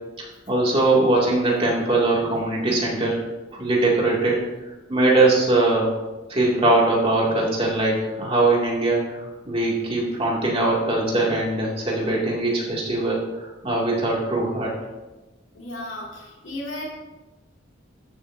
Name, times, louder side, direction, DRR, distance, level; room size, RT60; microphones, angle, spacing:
voice 1, 0.2-3.2 3.5-4.4 4.9-5.9 6.3-14.7, right 2 dB, 30° right, -4 dB, 2.4 m, -21 dB
voice 2, 15.5-16.9, left 1 dB, 85° left, -3 dB, 2.4 m, -34 dB
13.5 x 7.7 x 2.7 m, 1.1 s
head